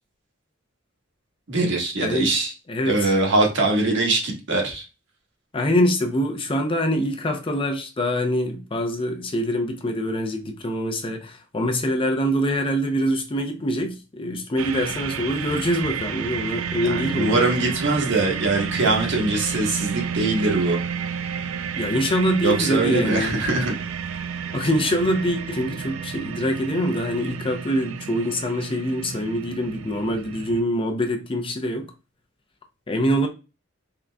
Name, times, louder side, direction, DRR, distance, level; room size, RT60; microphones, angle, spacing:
voice 1, 1.5-2.5 2.8-4.8 16.8-20.8 22.4-23.8, right 2 dB, 60° right, 1.2 m, -22 dB
voice 2, 2.7-3.1 5.5-17.5 21.8-23.3 24.5-31.9 32.9-33.3, equal, 25° left, 0.5 m, -24 dB
sound 1, 14.6-30.6, right 7 dB, 80° right, 0.4 m, -31 dB
3.7 x 3.6 x 2.2 m
head